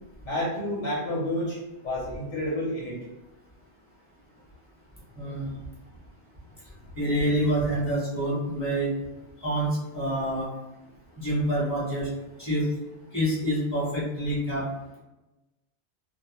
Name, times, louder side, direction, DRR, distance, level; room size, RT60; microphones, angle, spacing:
voice 1, 0.2-3.0, left 1 dB, 85° left, -5 dB, 1.0 m, -30 dB
voice 2, 5.1-5.5 6.9-8.9 9.4-10.5 11.2-12.1 12.4-12.7 13.1-14.7, right 1 dB, 15° right, -8 dB, 0.8 m, -27 dB
2.3 x 2.1 x 2.9 m, 1.0 s
omnidirectional pair, 1.2 m